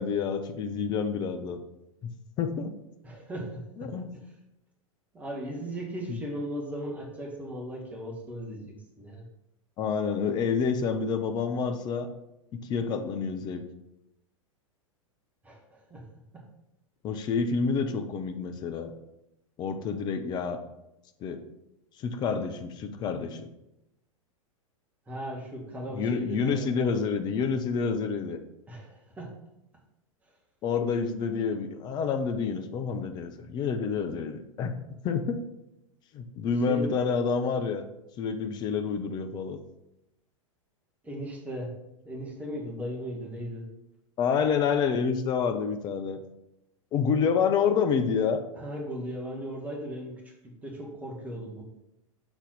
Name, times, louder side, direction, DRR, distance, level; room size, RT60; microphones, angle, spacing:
voice 1, 0.0-1.6 2.0-2.1 2.4-2.7 3.8-4.2 6.1-6.2 9.8-12.1 12.5-13.6 17.0-18.9 19.6-20.6 21.2-21.4 22.0-23.5 25.9-28.4 30.6-34.8 35.0-35.4 36.1-37.9 38.2-39.6 44.2-46.2 46.9-48.4, left 6 dB, 25° left, 8 dB, 0.5 m, -28 dB
voice 2, 3.0-4.1 5.1-9.2 15.4-16.0 16.3-16.4 25.1-26.7 28.7-29.4 36.7-36.9 41.0-41.7 42.0-43.7 48.6-51.6, equal, 10° right, -2 dB, 1.3 m, -37 dB
6.1 x 4.0 x 4.0 m, 0.87 s
figure-of-eight pair, 95°, 17 cm